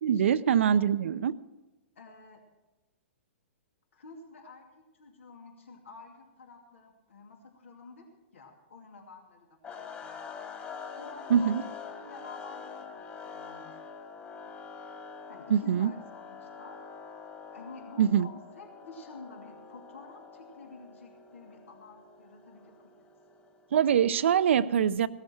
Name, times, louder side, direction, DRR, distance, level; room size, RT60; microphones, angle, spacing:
voice 1, 0.0-1.3 11.3-11.6 15.5-15.9 18.0-18.3 23.7-25.1, right 8 dB, 70° right, 0.5 m, -24 dB
voice 2, 0.6-0.9 1.9-2.4 3.9-8.1 8.3-10.3 11.0-11.5 11.9-13.8 14.4-14.5 15.3-16.8 17.5-22.9, left 4 dB, 80° left, 2.6 m, -50 dB
sound 1, 9.6-23.7, left 5 dB, 25° left, 2.4 m, -45 dB
17.0 x 13.0 x 4.5 m
hypercardioid pair, 125°, 7 cm